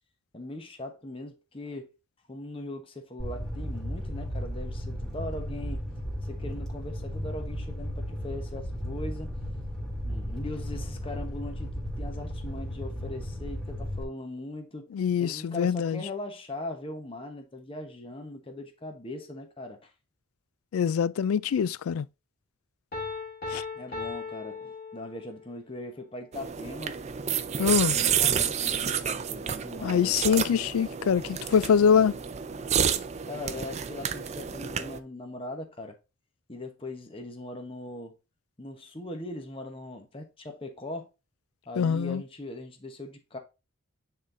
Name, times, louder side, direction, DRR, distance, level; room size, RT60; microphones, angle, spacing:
voice 1, 0.3-1.9 2.3-5.8 6.2-9.3 10.0-14.9 15.2-19.9 23.7-27.0 27.9-30.5 33.3-36.0 36.5-38.1 38.6-41.1 41.7-43.4, left 1 dB, 25° left, 1.0 m, -40 dB
Fire, 3.2-14.0, equal, 5° left, 1.9 m, -35 dB
voice 2, 14.9-16.0 20.7-22.1 23.5-23.6 27.6-28.0 29.8-32.2 41.8-42.2, left 7 dB, 85° left, 0.3 m, -24 dB
Piano, 22.9-25.5, left 4 dB, 45° left, 2.3 m, -37 dB
sound 1, 26.3-35.0, right 8 dB, 30° right, 0.4 m, -30 dB
9.5 x 3.8 x 2.6 m
head